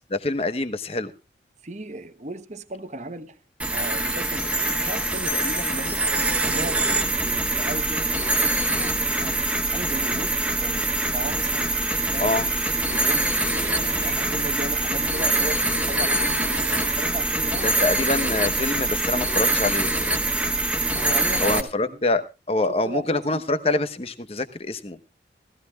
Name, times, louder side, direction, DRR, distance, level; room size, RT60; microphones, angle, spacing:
voice 1, 0.1-1.1 12.2-12.5 17.6-19.9 21.4-22.2 22.5-25.0, left 2 dB, 35° left, 1.0 m, -25 dB
voice 2, 1.6-3.4 3.7-6.0 6.4-6.9 7.2-9.4 9.7-13.3 13.8-17.9 20.9-22.1 22.7-23.4, right 1 dB, 40° right, 1.0 m, -36 dB
sound 1, 3.6-21.6, right 2 dB, 5° right, 1.1 m, -24 dB
sound 2, 11.5-14.5, left 3 dB, 55° left, 1.2 m, -42 dB
18.5 x 15.0 x 2.3 m
head